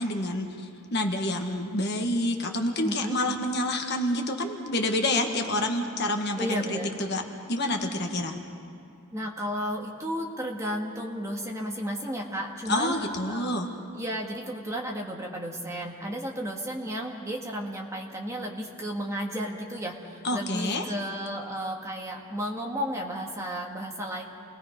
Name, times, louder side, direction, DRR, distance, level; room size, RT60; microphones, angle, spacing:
voice 1, 0.0-7.2 7.5-8.4 12.7-13.7 20.2-20.8, left 1 dB, 50° left, 3 dB, 1.6 m, -28 dB
voice 2, 2.8-3.2 6.4-6.9 9.1-13.6 13.9-24.2, equal, 15° right, -1 dB, 1.9 m, -33 dB
29.5 x 20.5 x 5.3 m, 2.6 s
head